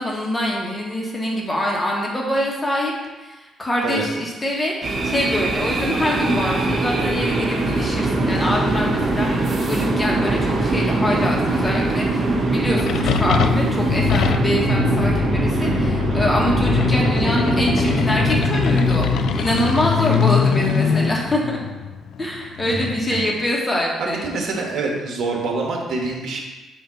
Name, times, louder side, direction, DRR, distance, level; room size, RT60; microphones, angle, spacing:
voice 1, 0.0-2.9 3.2-21.6 22.2-24.2, left 1 dB, 15° left, -2 dB, 1.4 m, -24 dB
sound 1, 4.8-21.1, right 2 dB, 40° right, 0.9 m, -22 dB
sound 2, 12.6-22.9, left 7 dB, 75° left, 0.3 m, -22 dB
voice 2, 24.0-26.4, right 3 dB, 65° right, -1 dB, 1.4 m, -25 dB
6.8 x 2.8 x 5.7 m, 1.2 s
cardioid pair, 115°, 0 cm